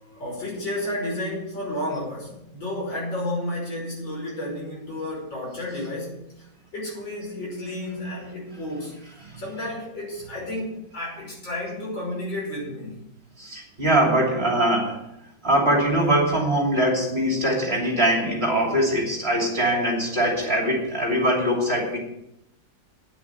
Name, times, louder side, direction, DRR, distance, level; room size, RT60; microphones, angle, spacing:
voice 1, 0.0-6.5 6.7-9.0 9.4-13.0, left 1 dB, 70° left, -3 dB, 6.4 m, -32 dB
voice 2, 13.4-15.1 15.4-22.0, right 1 dB, 30° right, -1 dB, 3.0 m, -22 dB
9.8 x 8.5 x 9.2 m, 0.82 s
omnidirectional pair, 2.1 m